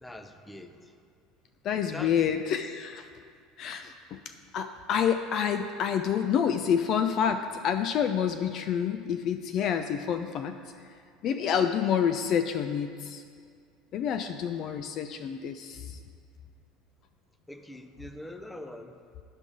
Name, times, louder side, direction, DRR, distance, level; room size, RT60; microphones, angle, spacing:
voice 1, 0.0-0.9 1.9-2.3 17.5-19.0, left 1 dB, 10° left, 8 dB, 0.6 m, -43 dB
voice 2, 1.6-3.1 3.6-4.2 4.5-10.6 11.2-13.2 13.9-16.0, left 8 dB, 45° left, 8 dB, 0.3 m, -28 dB
10.5 x 5.9 x 3.9 m, 2.2 s
figure-of-eight pair, 70°, 0 cm